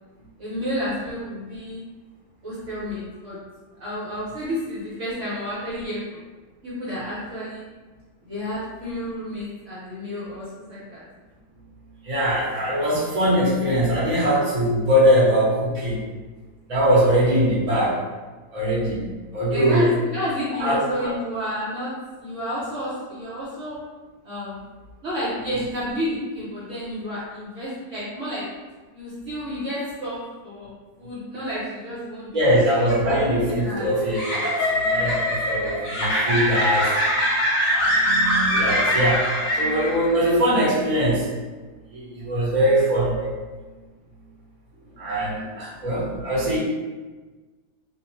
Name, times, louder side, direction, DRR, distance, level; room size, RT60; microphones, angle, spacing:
voice 1, 0.4-1.8 2.4-3.4 3.8-6.2 6.6-7.6 8.2-11.0 12.6-12.8 19.5-21.9 22.2-23.8 24.2-24.6 25.0-28.4 28.9-32.4 32.8-33.2 33.5-33.9 34.3-34.6 39.4-39.5 43.2-43.3 44.8-44.9 45.5-45.6, equal, 60° right, -9 dB, 0.9 m, -31 dB
voice 2, 12.0-16.0 16.7-18.0 18.5-19.9 20.6-20.8 32.3-36.9 37.7-39.2 39.5-41.3 41.9-43.2 45.0-46.6, equal, 30° right, -8 dB, 0.7 m, -21 dB
sound 1, 32.5-40.1, equal, 65° left, 1.1 m, -23 dB
2.7 x 2.0 x 3.0 m, 1.3 s
omnidirectional pair, 1.7 m